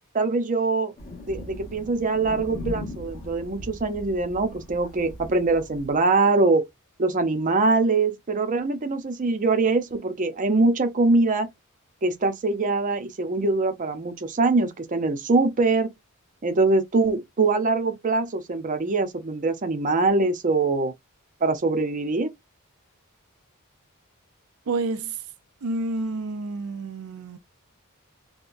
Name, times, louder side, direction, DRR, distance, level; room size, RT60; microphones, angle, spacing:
voice 1, 0.1-0.9 1.2-6.6 7.0-11.5 12.0-15.9 16.4-20.9 21.4-22.3, right 3 dB, 35° right, 0.6 m, -23 dB
Thunder, 1.0-6.0, left 1 dB, 40° left, 1.3 m, -39 dB
voice 2, 24.7-25.3 25.6-27.4, right 3 dB, 80° right, 0.5 m, -29 dB
3.8 x 2.2 x 2.6 m
head